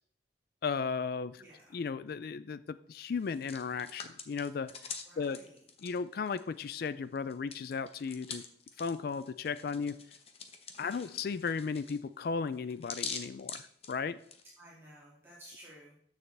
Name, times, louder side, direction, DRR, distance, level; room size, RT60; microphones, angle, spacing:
voice 1, 0.6-1.4 1.7-4.9 5.2-5.4 5.8-8.4 8.8-10.0 10.8-14.2, left 5 dB, 55° left, 14 dB, 0.3 m, -35 dB
voice 2, 1.4-1.8 5.0-5.6 10.7-11.2 14.6-16.0, right 1 dB, 15° right, -7 dB, 2.4 m, -54 dB
Hands, 3.2-6.9 7.2-14.4, left 5 dB, 35° left, 1.0 m, -45 dB
13.5 x 6.5 x 3.4 m, 0.67 s
head